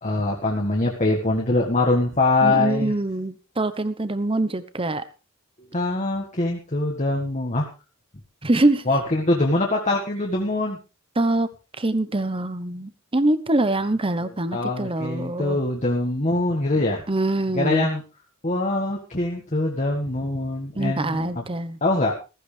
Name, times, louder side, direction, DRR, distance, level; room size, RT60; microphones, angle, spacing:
voice 1, 0.0-2.9 5.6-7.7 8.9-10.8 14.5-17.0 17.5-18.0 18.4-21.4 21.8-22.1, left 2 dB, 35° left, 0 dB, 1.8 m, -23 dB
voice 2, 2.4-5.0 8.4-8.9 11.2-11.5 11.8-15.6 17.1-17.9 20.8-21.8, right 2 dB, 25° right, 14 dB, 1.0 m, -24 dB
15.0 x 14.5 x 3.4 m, 0.30 s
head